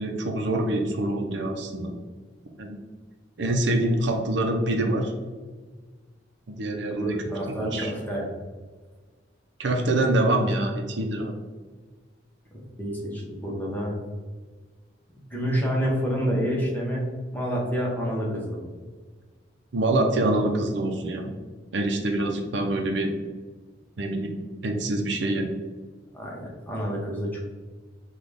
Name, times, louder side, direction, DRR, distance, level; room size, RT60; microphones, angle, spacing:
voice 1, 0.0-1.9 2.6-2.8 3.4-5.1 6.5-7.2 7.6-7.9 9.6-11.3 19.7-21.3 21.7-23.1 24.0-24.3 24.6-25.5, right 1 dB, 65° right, 2 dB, 0.6 m, -25 dB
voice 2, 7.0-8.2 12.5-14.0 15.3-18.7 26.1-27.4, equal, 10° left, -3 dB, 1.0 m, -28 dB
5.8 x 2.3 x 3.4 m, 1.4 s
head